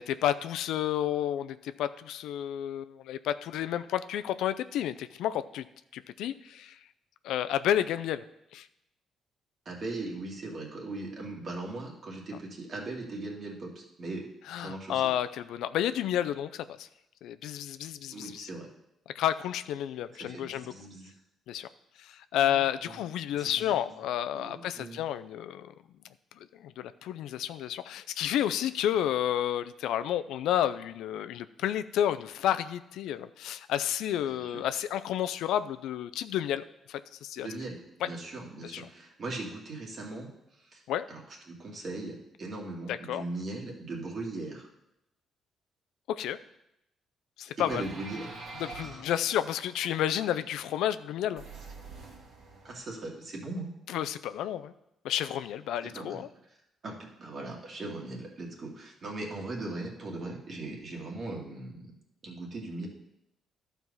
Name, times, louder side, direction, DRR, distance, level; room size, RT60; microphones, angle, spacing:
voice 1, 0.0-5.6 5.9-6.8 7.2-8.2 8.5-8.7 14.5-16.9 17.2-18.5 19.2-20.7 21.5-21.7 22.0-25.7 26.6-37.5 38.7-38.9 40.9-41.1 42.9-43.2 46.1-46.4 47.4-47.8 48.6-51.4 53.9-54.7 55.0-56.3, left 11 dB, 85° left, 12 dB, 0.4 m, -31 dB
voice 2, 9.7-14.2 14.6-15.0 18.1-18.7 20.2-21.1 22.3-23.0 23.3-24.0 24.3-25.0 34.3-34.6 37.4-37.8 38.0-40.3 40.6-40.8 41.1-44.7 47.7-48.3 48.7-49.0 52.6-53.7 55.8-56.2 56.8-61.9 62.2-62.9, right 2 dB, 50° right, -1 dB, 2.4 m, -39 dB
sound 1, 47.6-50.8 51.3-52.8, right 3 dB, 65° right, 2.4 m, -45 dB
12.0 x 4.6 x 5.5 m, 0.84 s
cardioid pair, 90°, 0 cm